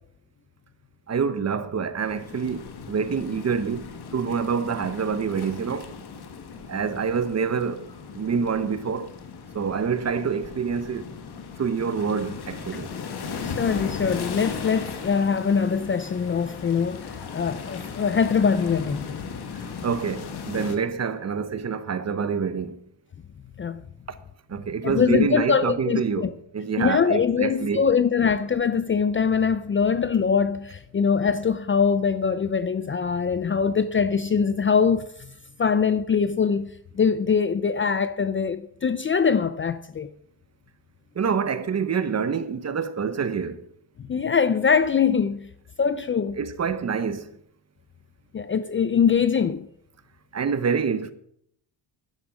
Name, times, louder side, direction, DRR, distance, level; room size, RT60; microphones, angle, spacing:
voice 1, 1.1-5.9 6.7-7.9 8.1-9.1 9.5-11.1 11.6-12.9 19.5-22.8 24.1-24.2 24.5-27.9 41.1-43.7 46.4-47.3 50.3-51.1, right 6 dB, 35° right, 1.0 m, -27 dB
sound 1, 2.0-20.8, left 5 dB, 60° left, 1.7 m, -37 dB
voice 2, 13.4-19.1 23.6-23.8 24.8-26.3 26.8-35.1 35.6-40.1 44.0-45.5 45.8-46.4 48.3-49.7, left 6 dB, 30° left, 0.5 m, -23 dB
10.5 x 10.0 x 6.2 m
cardioid pair, 115°, 45 cm